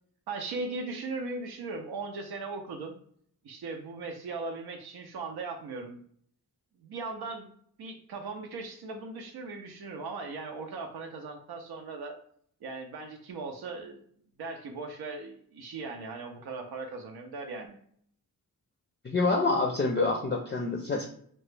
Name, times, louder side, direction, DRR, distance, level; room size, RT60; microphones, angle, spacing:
voice 1, 0.3-2.9 3.4-6.0 6.8-7.5 7.8-12.2 12.6-14.0 14.4-17.8, right 3 dB, 90° right, 2 dB, 0.5 m, -38 dB
voice 2, 19.0-21.1, left 3 dB, 30° left, 2 dB, 0.4 m, -27 dB
2.9 x 2.1 x 3.2 m, 0.62 s
wide cardioid pair, 80°, 37 cm